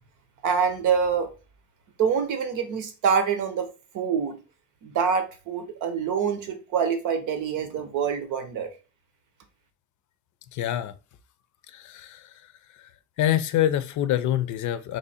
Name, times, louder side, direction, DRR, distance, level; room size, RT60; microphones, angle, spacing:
voice 1, 0.4-1.3 2.0-3.7 3.9-4.4 4.8-8.7, right 6 dB, 85° right, 0.8 m, -25 dB
voice 2, 10.5-10.9 11.7-12.3 12.8-12.9 13.2-15.0, left 11 dB, 75° left, 0.5 m, -26 dB
3.1 x 2.7 x 4.1 m
cardioid pair, 90°, 30 cm